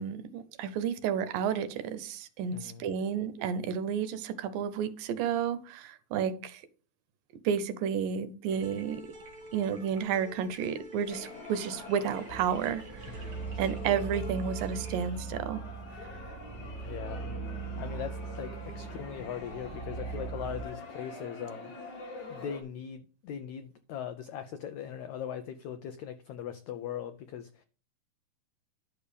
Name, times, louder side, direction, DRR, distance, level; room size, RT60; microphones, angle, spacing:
voice 1, 0.0-6.6 7.4-9.0 9.5-13.1 13.6-15.6, right 7 dB, 75° right, 2.5 m, -31 dB
voice 2, 2.5-2.9 13.1-13.4 16.6-17.3 17.8-21.7 22.3-27.6, left 9 dB, 80° left, 1.6 m, -40 dB
sound 1, 8.4-15.1, right 1 dB, 40° right, 2.6 m, -48 dB
sound 2, 11.1-22.6, left 3 dB, 55° left, 3.8 m, -46 dB
sound 3, 12.3-20.6, right 5 dB, 10° left, 0.4 m, -40 dB
11.5 x 6.8 x 5.1 m
omnidirectional pair, 4.2 m